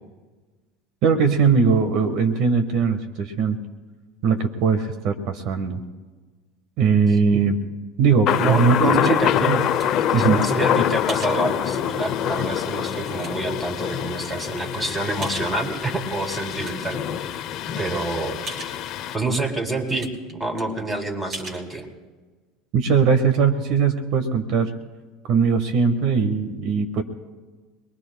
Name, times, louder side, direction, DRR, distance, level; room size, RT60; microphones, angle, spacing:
voice 1, 1.0-3.6 4.2-5.8 6.8-7.5 8.0-9.0 9.4-9.6 10.1-10.4 22.7-24.7 25.3-27.0, right 5 dB, 60° right, 7 dB, 1.4 m, -20 dB
Thunder, 8.3-19.2, left 10 dB, 50° left, 0.6 m, -25 dB
voice 2, 8.4-9.7 10.0-17.0 17.8-18.4 19.1-21.9, right 2 dB, 5° right, 1 dB, 3.2 m, -27 dB
sound 1, 9.3-10.4 11.1-11.4 12.1-12.2 12.7-13.6 14.2-14.3 15.2-15.8 16.2-16.9 17.3-17.4 17.7-17.8 18.5-18.8 19.4-19.5 19.7-20.3 20.6-20.7 21.3-21.6, right 2 dB, 40° right, 3.8 m, -39 dB
24.5 x 21.5 x 2.3 m, 1.3 s
hypercardioid pair, 90°, 0 cm